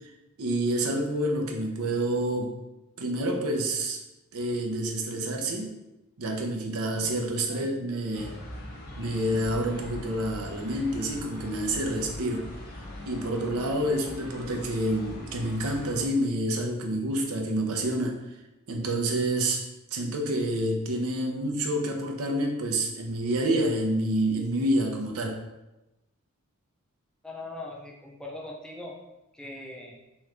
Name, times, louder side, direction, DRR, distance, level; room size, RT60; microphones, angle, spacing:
voice 1, 0.4-2.5 3.0-4.0 4.3-5.7 6.2-8.3 9.0-12.5 13.1-18.2 18.7-19.6 19.9-25.4, right 1 dB, 80° right, 2 dB, 0.7 m, -28 dB
sound 1, 8.1-16.1, left 1 dB, 45° left, 0.8 m, -41 dB
voice 2, 27.2-29.0 29.3-30.0, left 2 dB, 5° left, -1 dB, 0.4 m, -40 dB
3.6 x 3.1 x 3.2 m, 0.97 s
head